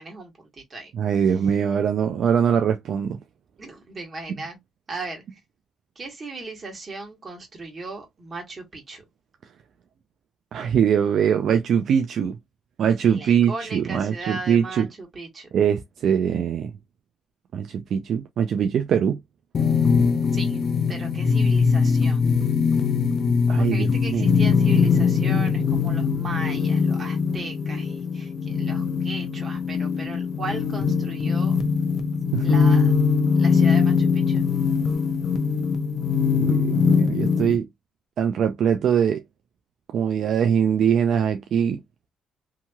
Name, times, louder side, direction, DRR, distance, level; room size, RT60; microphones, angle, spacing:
voice 1, 0.0-0.9 3.6-4.6 4.9-5.4 5.9-9.0 13.0-15.5 20.3-22.2 23.6-31.5 32.4-32.9 33.4-34.5, right 3 dB, 35° right, 1.5 m, -37 dB
voice 2, 1.0-3.2 10.5-12.4 12.8-14.9 15.5-16.7 17.5-19.2 23.5-24.3 32.3-32.4 36.3-37.7 38.2-39.2 39.9-41.8, right 8 dB, 65° right, 0.4 m, -22 dB
sound 1, 19.5-37.6, left 5 dB, 50° left, 0.6 m, -21 dB
2.8 x 2.8 x 2.3 m
cardioid pair, 90°, 0 cm